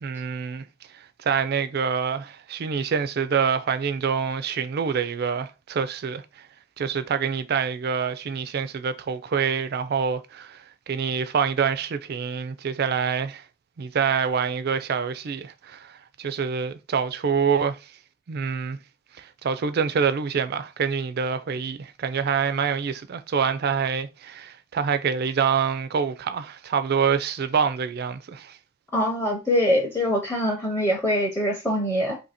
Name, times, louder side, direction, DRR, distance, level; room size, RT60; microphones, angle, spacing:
voice 1, 0.0-0.7 0.9-6.5 6.8-13.4 13.8-17.9 18.3-18.8 19.1-28.6, right 6 dB, 50° right, 0.4 m, -26 dB
voice 2, 28.9-32.2, equal, 10° left, 0.6 m, -23 dB
2.8 x 2.6 x 4.1 m
head